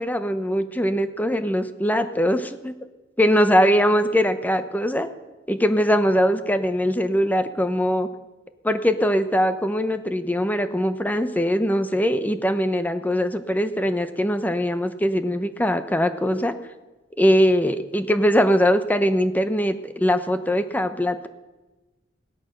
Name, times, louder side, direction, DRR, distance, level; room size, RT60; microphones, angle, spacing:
voice 1, 0.0-2.7 3.2-5.1 5.5-8.1 8.6-16.5 17.2-21.3, equal, 10° left, 10 dB, 0.8 m, -21 dB
17.0 x 13.0 x 6.6 m, 1.1 s
head